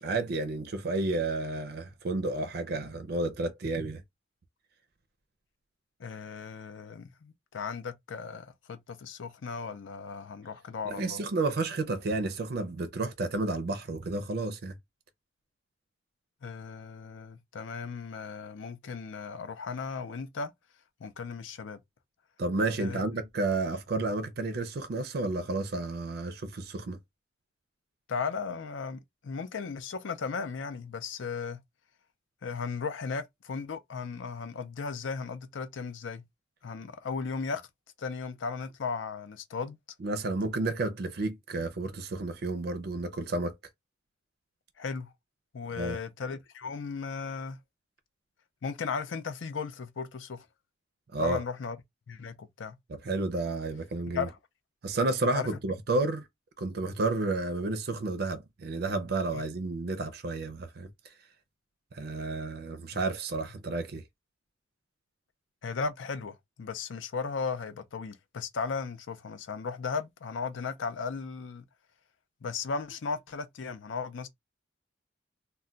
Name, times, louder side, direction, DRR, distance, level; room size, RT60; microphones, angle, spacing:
voice 1, 0.0-4.0 10.8-14.8 22.4-27.0 40.0-43.5 45.8-46.0 51.1-51.4 52.9-54.3 54.8-56.3 56.6-61.1 61.9-64.0, right 2 dB, 55° right, 0.4 m, -31 dB
voice 2, 6.0-11.2 16.4-20.5 21.0-21.8 22.8-23.0 28.1-31.6 32.4-36.2 36.6-37.6 38.0-39.8 44.8-45.1 45.5-47.6 48.6-50.5 51.2-51.8 52.1-52.8 54.1-54.4 55.3-55.5 59.3-59.4 62.9-63.0 65.6-71.6 72.4-74.3, left 5 dB, 80° left, 0.5 m, -36 dB
2.2 x 2.2 x 3.7 m
head